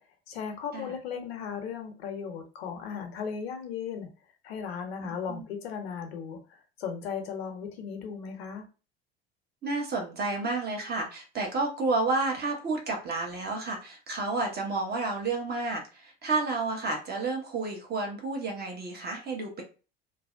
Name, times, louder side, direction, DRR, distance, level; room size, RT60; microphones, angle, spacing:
voice 1, 0.3-4.1 4.4-8.6, left 6 dB, 80° left, 5 dB, 0.7 m, -36 dB
voice 2, 5.0-5.4 9.6-19.6, right 3 dB, 30° right, 2 dB, 0.9 m, -31 dB
2.5 x 2.1 x 2.4 m, 0.33 s
hypercardioid pair, 70°, 31 cm